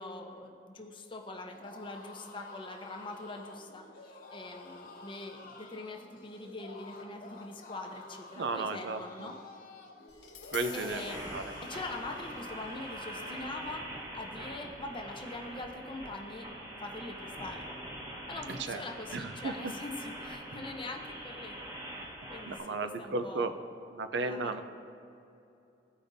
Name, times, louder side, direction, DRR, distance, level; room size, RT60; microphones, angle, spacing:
voice 1, 0.0-9.3 10.7-11.2 11.6-13.9 14.1-16.5 16.8-17.7 18.3-21.6 22.3-23.5 24.2-24.6, left 2 dB, 30° left, 2 dB, 0.7 m, -43 dB
sound 1, 1.5-13.6, left 3 dB, 55° left, 1.0 m, -50 dB
voice 2, 8.4-9.3 10.5-11.0 11.3-11.4 18.5-18.8 19.1-19.5 22.5-23.5 23.9-24.6, right 3 dB, 90° right, 9 dB, 0.5 m, -34 dB
Tap, 10.1-16.2, left 7 dB, 85° left, 1.2 m, -52 dB
sound 2, 10.9-22.6, right 1 dB, 20° right, 1.1 m, -44 dB
15.0 x 5.1 x 2.6 m, 2.7 s
head